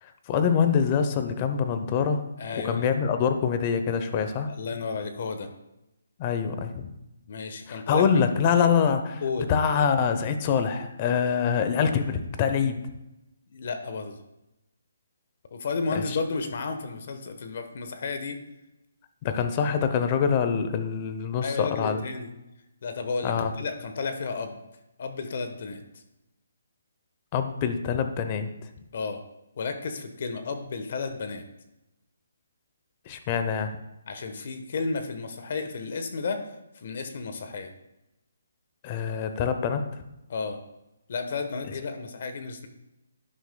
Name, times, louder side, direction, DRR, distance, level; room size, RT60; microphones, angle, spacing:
voice 1, 0.0-2.2 2.6-4.5 6.2-6.9 7.7-9.2 9.5-12.9 16.1-16.2 19.2-22.0 23.2-23.5 27.3-28.5 33.1-33.8 38.8-39.8, left 7 dB, 25° left, 8 dB, 0.7 m, -25 dB
voice 2, 2.4-2.9 4.5-5.5 7.3-8.0 9.2-9.5 13.5-14.2 15.5-18.4 21.4-22.3 22.8-24.6 25.0-25.8 28.9-29.2 29.5-31.5 34.1-36.4 36.7-37.7 40.3-40.6 41.1-42.7, left 4 dB, 50° left, 7 dB, 1.1 m, -32 dB
11.0 x 10.0 x 2.3 m, 0.94 s
hypercardioid pair, 165°, 0 cm